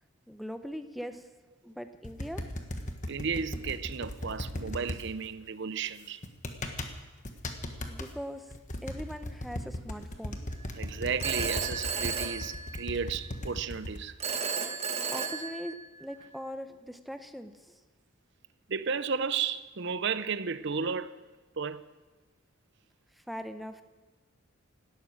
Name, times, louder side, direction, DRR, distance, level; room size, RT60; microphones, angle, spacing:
voice 1, 0.3-1.2 1.6-2.4 7.9-8.4 8.8-10.4 15.1-15.7 16.0-17.5 23.3-23.8, equal, ahead, 0.7 m, -40 dB
sound 1, 2.0-5.0 6.2-6.9 7.3-8.1 8.5-14.0, left 1 dB, 35° left, 1.4 m, -37 dB
voice 2, 3.1-6.2 10.7-14.2 18.7-21.2 21.6-21.9, right 6 dB, 55° right, 0.6 m, -33 dB
Telephone, 11.2-13.2 14.2-16.1, right 5 dB, 30° right, 1.2 m, -34 dB
17.5 x 12.5 x 6.4 m
head